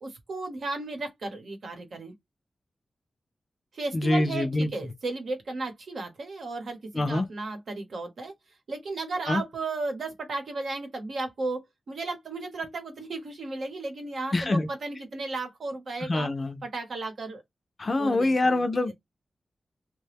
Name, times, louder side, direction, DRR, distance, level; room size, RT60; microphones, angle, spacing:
voice 1, 0.0-2.1 3.7-8.3 8.7-16.3 16.6-17.4 18.0-18.9, right 3 dB, 70° right, 0.9 m, -34 dB
voice 2, 3.9-4.7 6.9-7.3 9.3-9.4 14.3-14.7 16.0-16.6 17.8-18.9, left 2 dB, 35° left, 0.4 m, -25 dB
2.9 x 2.2 x 3.3 m
wide cardioid pair, 145°, 0 cm